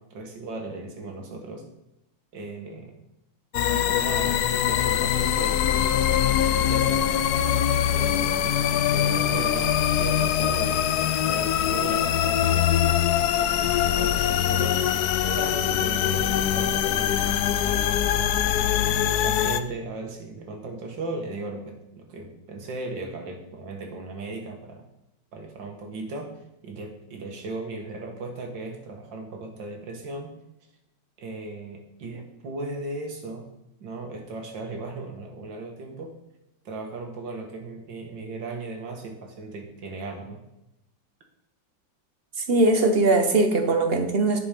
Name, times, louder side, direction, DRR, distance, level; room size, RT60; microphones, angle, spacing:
voice 1, 0.0-1.6 2.3-2.9 3.7-6.1 6.6-7.2 7.9-8.6 8.9-11.0 11.2-12.8 13.8-17.9 18.8-24.8 25.3-30.3 31.2-33.5 33.8-36.1 36.7-40.4, right 3 dB, 75° right, 3 dB, 2.2 m, -37 dB
sound 1, 3.5-19.6, left 10 dB, 70° left, 1.0 m, -23 dB
voice 2, 42.4-44.4, right 2 dB, 40° right, 6 dB, 1.0 m, -20 dB
10.0 x 6.1 x 5.3 m, 0.87 s
omnidirectional pair, 2.0 m